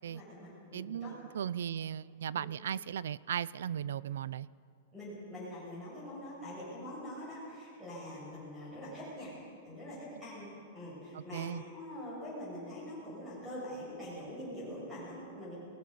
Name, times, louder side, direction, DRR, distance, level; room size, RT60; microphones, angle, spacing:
voice 1, 0.0-1.1 2.3-2.5 4.9-9.3 9.6-15.6, left 1 dB, 5° right, -7 dB, 6.4 m, -44 dB
voice 2, 0.7-4.5 11.1-11.6, right 9 dB, 80° right, 21 dB, 0.5 m, -37 dB
27.5 x 18.5 x 6.5 m, 2.4 s
supercardioid pair, 180°, 0 cm